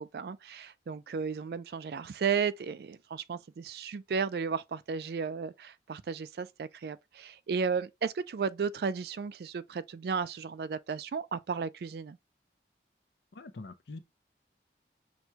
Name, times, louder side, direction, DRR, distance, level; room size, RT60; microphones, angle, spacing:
voice 1, 0.0-12.2, right 5 dB, 60° right, 0.3 m, -34 dB
voice 2, 13.4-14.0, left 3 dB, 75° left, 0.6 m, -44 dB
6.0 x 2.2 x 2.8 m
head